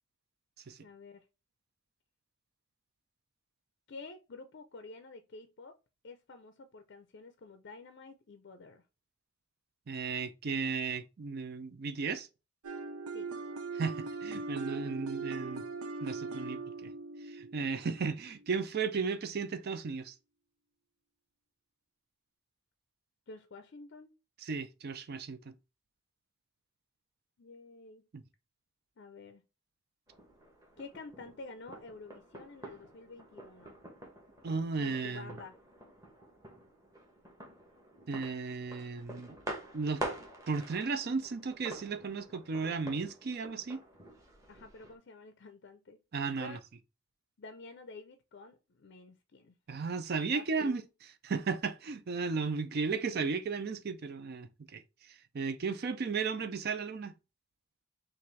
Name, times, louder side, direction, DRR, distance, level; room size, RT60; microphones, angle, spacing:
voice 1, 0.8-1.3 3.9-5.8 6.0-8.8 13.1-13.3 23.3-24.1 27.4-28.0 29.0-29.4 30.8-33.8 34.8-35.5 44.5-46.0 46.4-46.6 47.4-49.5 50.3-50.8, left 3 dB, 50° left, 0.5 m, -49 dB
voice 2, 9.9-12.3 13.7-15.6 16.0-16.9 17.2-20.1 24.4-25.5 28.1-28.2 34.4-35.3 38.1-39.4 39.7-40.0 40.5-43.8 46.1-46.6 49.7-57.1, right 4 dB, 45° right, 0.4 m, -35 dB
sound 1, 12.6-18.5, right 3 dB, 85° right, 0.7 m, -40 dB
sound 2, 30.1-45.0, right 1 dB, 15° right, 1.0 m, -47 dB
5.8 x 2.5 x 3.1 m
head